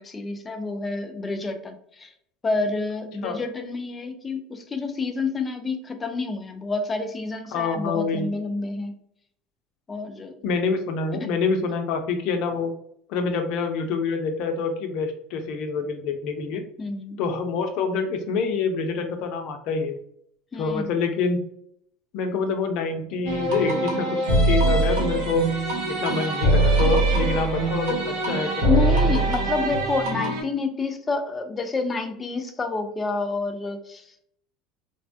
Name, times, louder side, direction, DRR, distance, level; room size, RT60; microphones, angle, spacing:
voice 1, 0.0-2.1 2.4-8.9 9.9-10.4 16.8-17.2 20.5-20.9 28.6-34.1, left 3 dB, 25° left, 6 dB, 0.5 m, -28 dB
voice 2, 7.5-8.3 10.4-12.7 13.1-16.6 17.2-20.0 20.5-21.4 22.1-25.5 25.9-28.7, left 4 dB, 65° left, 5 dB, 0.6 m, -26 dB
sound 1, 23.3-30.4, right 2 dB, 75° right, 0.9 m, -22 dB
3.3 x 2.2 x 2.6 m, 0.70 s
supercardioid pair, 95°, 0 cm